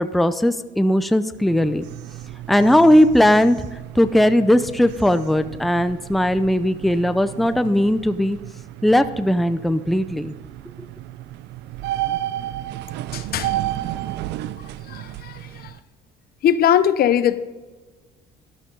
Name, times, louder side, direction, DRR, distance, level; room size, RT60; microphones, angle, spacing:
voice 1, 0.0-1.8 2.5-3.7 3.9-8.4 8.8-10.4, left 1 dB, ahead, 11 dB, 0.6 m, -18 dB
sound 1, 1.4-15.8, right 14 dB, 80° right, 0.5 m, -33 dB
voice 2, 13.1-13.6 14.6-15.8 16.4-17.4, left 9 dB, 60° left, 13 dB, 0.7 m, -21 dB
12.5 x 12.0 x 3.8 m, 1.2 s
cardioid pair, 90°, 18 cm